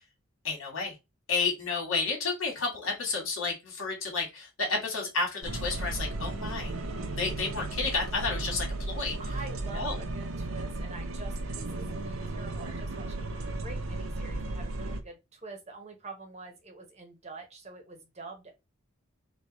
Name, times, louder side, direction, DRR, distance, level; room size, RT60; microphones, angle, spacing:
voice 1, 0.4-0.9 1.3-6.7 7.1-9.4 9.7-10.1, left 4 dB, 75° left, 2.1 m, -31 dB
sound 1, 5.4-15.0, right 2 dB, 85° right, 0.7 m, -35 dB
voice 2, 9.2-13.3 13.6-18.5, right 3 dB, 30° right, 1.0 m, -46 dB
3.9 x 2.5 x 4.3 m
head